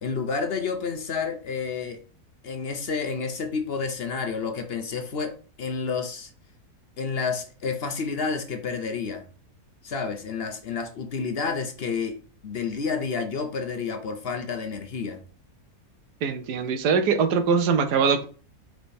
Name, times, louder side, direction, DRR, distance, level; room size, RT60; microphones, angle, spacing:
voice 1, 0.0-2.0 2.4-6.3 7.0-9.2 9.8-12.2 12.4-15.2, left 5 dB, 50° left, 0.8 m, -30 dB
voice 2, 16.2-18.3, right 6 dB, 80° right, 1.4 m, -22 dB
5.1 x 4.4 x 4.3 m
omnidirectional pair, 1.7 m